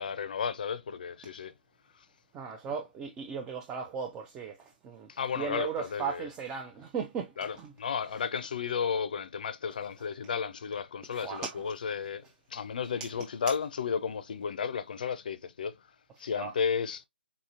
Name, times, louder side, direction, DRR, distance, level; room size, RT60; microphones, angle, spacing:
voice 1, 0.0-1.5 5.1-6.3 7.4-12.2 12.5-15.8 16.2-17.0, left 6 dB, 55° left, 0.5 m, -33 dB
voice 2, 2.3-4.6 4.8-5.1 5.4-7.7 11.1-11.6 16.3-16.5, right 6 dB, 10° right, 0.3 m, -36 dB
3.9 x 2.9 x 2.4 m
figure-of-eight pair, 145°, 6 cm